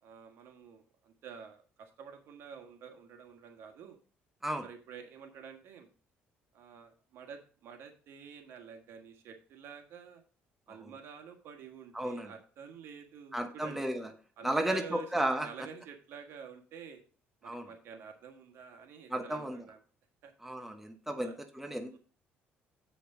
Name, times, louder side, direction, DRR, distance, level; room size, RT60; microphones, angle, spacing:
voice 1, 0.0-4.0 4.6-5.9 6.5-10.2 10.7-13.8 14.4-15.1 15.4-17.0 17.4-19.8 20.2-20.3 21.2-21.3 21.9-22.0, right 6 dB, 70° right, 5 dB, 1.5 m, -49 dB
voice 2, 11.9-12.3 13.3-14.1 14.4-15.5 17.4-17.7 19.1-19.7 20.4-22.0, right 1 dB, 5° right, 5 dB, 1.0 m, -34 dB
7.9 x 5.1 x 4.9 m, 0.39 s
cardioid pair, 105°, 4 cm